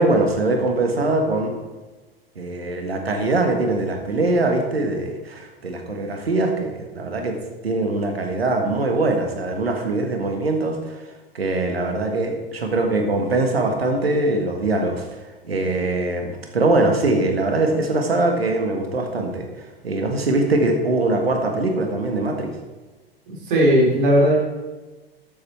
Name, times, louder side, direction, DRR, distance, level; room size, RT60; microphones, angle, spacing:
voice 1, 0.0-1.5 2.3-7.4 7.6-11.0 11.3-15.1 15.4-19.5 19.8-22.5, right 2 dB, 75° right, 4 dB, 1.5 m, -22 dB
voice 2, 23.3-24.4, equal, 55° right, -1 dB, 3.3 m, -17 dB
13.0 x 7.3 x 4.4 m, 1.2 s
figure-of-eight pair, 85°, 30 cm